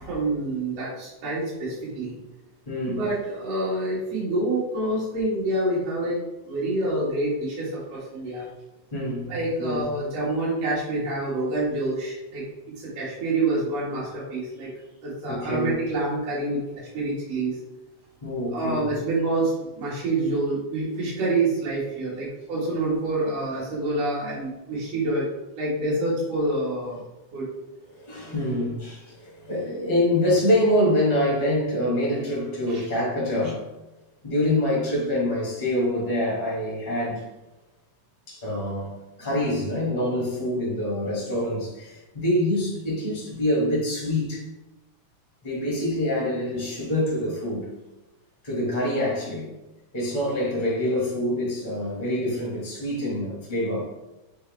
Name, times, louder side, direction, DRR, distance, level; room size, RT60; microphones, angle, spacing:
voice 1, 0.0-2.2 2.8-6.2 6.4-8.4 9.3-12.4 12.8-14.7 15.0-17.6 18.5-25.3 25.5-27.0 27.3-27.5 32.7-32.9, right 2 dB, 60° right, 2.7 m, -27 dB
voice 2, 2.6-3.0 8.9-9.3 9.6-9.9 15.3-15.8 18.2-18.8 27.9-33.7 34.2-37.2 38.3-38.9 39.2-44.4 45.4-47.7 48.4-49.5 49.9-53.9, left 1 dB, 20° left, 1.7 m, -25 dB
6.8 x 4.4 x 3.2 m
omnidirectional pair, 3.4 m